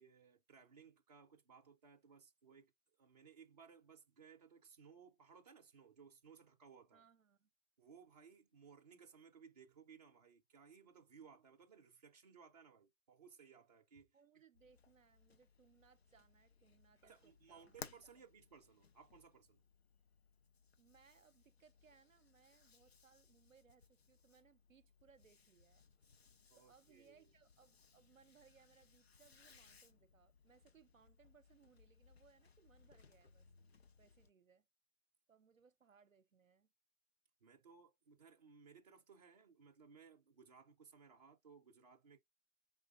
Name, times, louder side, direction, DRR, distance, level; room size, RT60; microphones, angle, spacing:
voice 1, 0.0-2.7 3.0-7.1 7.8-14.1 17.0-19.6 26.5-27.3 37.4-42.2, right 6 dB, 30° right, 0.6 m, -62 dB
voice 2, 6.9-7.5 14.1-17.8 18.0-18.2 20.8-25.8 26.5-33.5 34.0-34.7 35.3-36.7, right 6 dB, 75° right, 0.7 m, -69 dB
sound 1, 14.5-34.3, left 5 dB, 50° left, 0.6 m, -63 dB
5.0 x 3.7 x 2.4 m
figure-of-eight pair, 145°, 41 cm